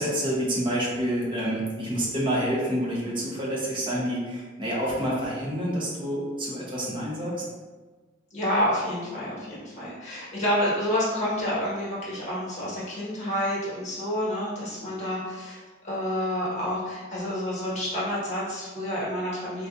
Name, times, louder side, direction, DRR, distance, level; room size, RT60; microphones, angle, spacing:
voice 1, 0.0-7.4, equal, 25° right, -5 dB, 0.8 m, -28 dB
voice 2, 8.3-19.7, equal, 35° left, -7 dB, 1.3 m, -29 dB
3.9 x 2.6 x 2.3 m, 1.3 s
head